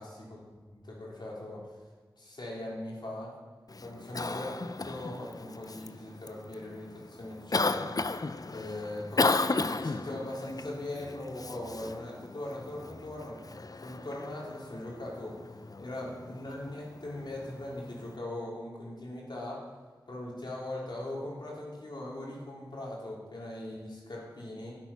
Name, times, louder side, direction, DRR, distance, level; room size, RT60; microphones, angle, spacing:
voice 1, 0.0-1.6 2.2-3.3 3.8-4.5 4.8-8.1 8.5-15.4 15.8-19.6 20.1-24.7, left 1 dB, 70° left, -4 dB, 3.5 m, -40 dB
Cough, 3.7-18.2, left 3 dB, 50° left, 0.5 m, -35 dB
11.5 x 8.9 x 5.7 m, 1.5 s
wide cardioid pair, 45°, 8 cm